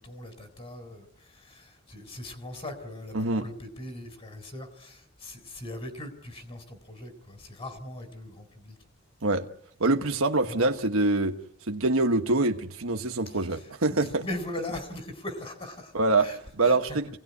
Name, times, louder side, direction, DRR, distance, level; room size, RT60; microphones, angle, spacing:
voice 1, 0.0-8.8 10.5-10.7 13.3-13.6 13.9-17.0, left 1 dB, 30° left, 4.2 m, -40 dB
voice 2, 3.1-3.5 9.2-9.5 9.8-11.4 11.7-14.3 15.9-17.1, right 2 dB, 75° right, 1.3 m, -25 dB
26.5 x 18.0 x 9.7 m
head